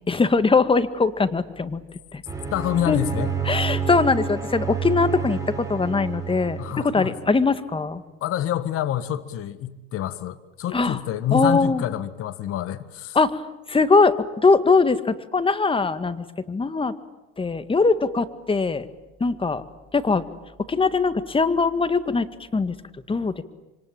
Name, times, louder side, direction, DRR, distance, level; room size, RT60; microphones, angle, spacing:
voice 1, 0.1-1.8 2.1-2.2 2.9-3.0 3.5-8.0 10.7-11.0 11.3-11.8 13.2-13.4 13.7-16.9 17.4-18.9 19.2-19.6 19.9-20.2 20.7-22.3 22.5-22.7 23.1-23.4, left 4 dB, 20° left, 1.9 m, -21 dB
sound 1, 2.3-7.4, right 6 dB, 10° right, 7.7 m, -29 dB
voice 2, 2.5-3.3 6.6-7.1 8.2-13.2, left 11 dB, 50° left, 1.6 m, -27 dB
26.5 x 25.0 x 8.8 m
hypercardioid pair, 80°, 29 cm